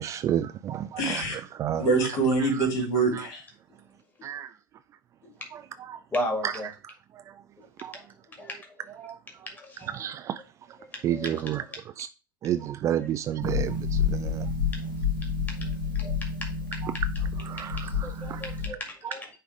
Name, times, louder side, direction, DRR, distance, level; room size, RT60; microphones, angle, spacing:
voice 1, 0.0-1.2 1.6-1.9 4.2-4.5 5.9-6.0 6.4-6.5 7.8-7.9 9.0-9.2 9.9-10.4 11.0-11.6 12.0-12.1 12.4-14.5 16.8-16.9 17.5-18.4, right 11 dB, 25° right, 0.4 m, -30 dB
voice 2, 1.0-1.4 1.8-3.4, right 3 dB, 45° left, 3.6 m, -25 dB
voice 3, 6.1-6.7 7.9-8.0 8.4-8.6 9.6-10.1 10.9-11.8 12.5-12.6 13.0-13.1 16.0-16.1 17.8-19.3, left 1 dB, 15° left, 1.9 m, -35 dB
Harp, 13.4-18.7, left 5 dB, 75° left, 3.5 m, -29 dB
9.9 x 3.4 x 3.4 m
figure-of-eight pair, 80°, 11 cm